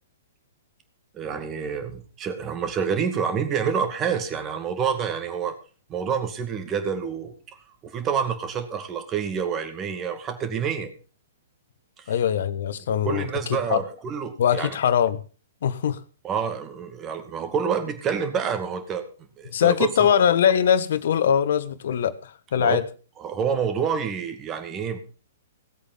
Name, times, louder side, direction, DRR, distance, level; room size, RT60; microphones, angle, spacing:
voice 1, 1.1-5.5 5.9-7.3 7.8-10.9 12.0-12.1 13.0-14.8 16.2-19.0 19.4-20.1 22.6-22.8 23.2-25.0, right 7 dB, 25° right, 8 dB, 2.3 m, -28 dB
voice 2, 12.1-13.8 14.4-15.2 15.6-16.0 19.5-22.8, left 8 dB, 60° left, 14 dB, 1.3 m, -22 dB
17.5 x 8.3 x 5.6 m, 0.36 s
figure-of-eight pair, 115°, 0 cm